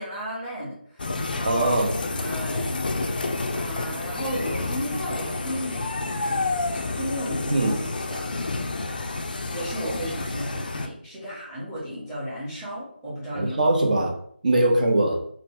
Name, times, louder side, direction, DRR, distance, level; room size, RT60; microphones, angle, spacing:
voice 1, 0.0-1.7 2.1-2.8 3.5-6.4 6.9-7.7 8.1-8.4 9.5-13.6 14.5-14.6, equal, 10° right, -9 dB, 0.8 m, -34 dB
sound 1, 1.0-10.9, left 3 dB, 50° left, 0.4 m, -29 dB
voice 2, 1.4-1.9 7.5-7.8 13.3-14.1 14.4-15.2, right 2 dB, 45° right, 1 dB, 0.7 m, -21 dB
2.8 x 2.0 x 3.5 m, 0.64 s
figure-of-eight pair, 165°, 6 cm